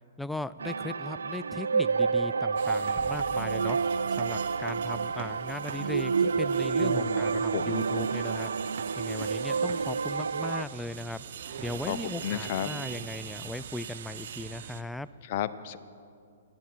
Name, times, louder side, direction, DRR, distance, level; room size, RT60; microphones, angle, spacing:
voice 1, 0.2-11.2 11.6-15.1, left 2 dB, 5° left, 15 dB, 0.3 m, -38 dB
sound 1, 0.6-10.6, right 5 dB, 85° right, 0.3 m, -29 dB
sound 2, 2.6-14.8, right 8 dB, 60° right, 0.9 m, -42 dB
sound 3, 3.0-5.5, left 2 dB, 25° left, 2.0 m, -50 dB
voice 2, 6.8-7.2 7.5-7.8 11.9-12.0 12.2-12.7 15.3-15.8, left 11 dB, 50° left, 12 dB, 0.7 m, -32 dB
25.0 x 9.5 x 4.6 m, 2.4 s
hypercardioid pair, 125°, 0 cm